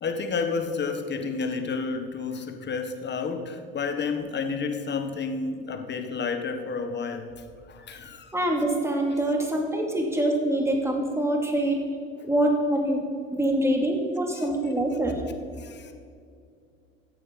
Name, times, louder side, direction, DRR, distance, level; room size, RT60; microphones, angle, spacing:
voice 1, 0.0-7.3 7.7-8.3 14.3-14.5 15.6-15.9, left 4 dB, 35° left, 6 dB, 1.5 m, -30 dB
voice 2, 8.3-11.8 12.2-13.0 13.3-15.2, right 1 dB, 10° right, 1 dB, 2.6 m, -25 dB
14.5 x 8.4 x 4.1 m, 2.3 s
hypercardioid pair, 70°, 31 cm